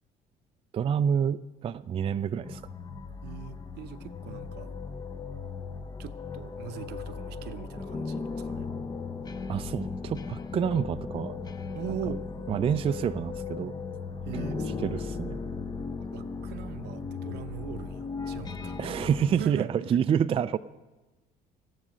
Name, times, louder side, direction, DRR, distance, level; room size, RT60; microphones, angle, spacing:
voice 1, 0.7-2.6 9.5-11.4 11.9-12.0 12.5-13.7 14.5-15.4 18.8-20.6, right 8 dB, 35° right, 11 dB, 0.3 m, -28 dB
sound 1, 2.4-19.4, left 4 dB, 25° left, 0.7 m, -37 dB
voice 2, 3.2-4.7 6.0-8.7 11.7-12.2 14.2-14.9 16.1-18.8 19.4-20.0, right 9 dB, 80° right, 10 dB, 0.8 m, -40 dB
14.5 x 10.5 x 6.3 m, 1.1 s
cardioid pair, 110°, 17 cm